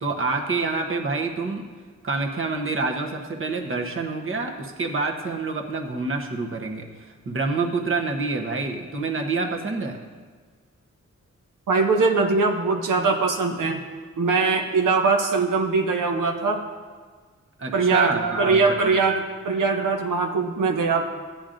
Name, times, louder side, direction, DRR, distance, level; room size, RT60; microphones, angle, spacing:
voice 1, 0.0-1.6 2.0-10.0 17.6-19.0, right 3 dB, 40° right, 2 dB, 1.0 m, -27 dB
voice 2, 11.7-13.8 14.2-16.6 17.7-21.0, right 4 dB, 90° right, 3 dB, 0.7 m, -21 dB
13.5 x 8.7 x 2.6 m, 1.5 s
wide cardioid pair, 95°, 31 cm